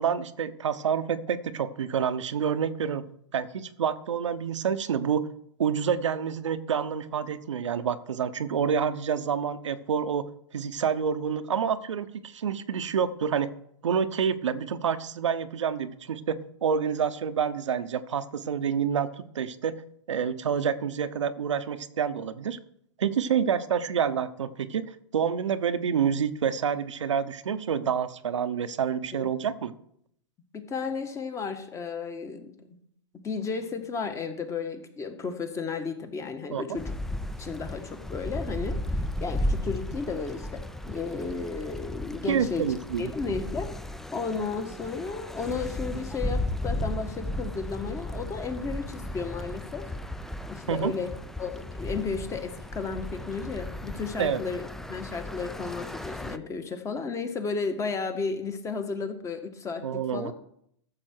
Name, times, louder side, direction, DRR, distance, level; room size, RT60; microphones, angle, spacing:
voice 1, 0.0-3.0 3.3-5.3 5.6-10.2 10.5-13.5 13.8-19.8 20.1-22.6 23.0-29.7 36.5-36.8 42.3-43.1 50.7-50.9 54.2-54.4 59.8-60.3, right 7 dB, 80° right, 10 dB, 0.9 m, -28 dB
voice 2, 30.5-32.7 33.2-37.0 37.4-38.8 39.2-42.6 43.0-43.7 44.1-49.9 50.5-51.1 51.4-60.3, left 4 dB, 20° left, 7 dB, 1.5 m, -33 dB
sound 1, 36.8-56.4, left 1 dB, ahead, 0.5 m, -35 dB
14.0 x 7.4 x 4.5 m, 0.71 s
hypercardioid pair, 115°, 15 cm